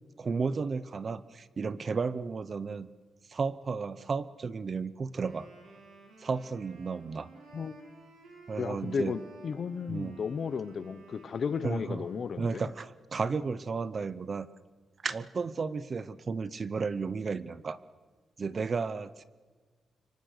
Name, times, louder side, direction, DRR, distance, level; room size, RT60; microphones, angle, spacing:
voice 1, 0.2-2.9 3.3-5.5 6.2-7.3 8.5-9.2 9.9-10.2 11.6-12.0 12.4-14.5 15.0-17.8 18.4-19.2, right 5 dB, 35° right, 16 dB, 0.8 m, -33 dB
Wind instrument woodwind instrument, 5.1-12.9, right 2 dB, 85° right, 6.6 m, -55 dB
voice 2, 8.6-12.6, left 6 dB, 45° left, 15 dB, 1.0 m, -34 dB
27.0 x 24.0 x 6.7 m, 1.4 s
wide cardioid pair, 165°, 0 cm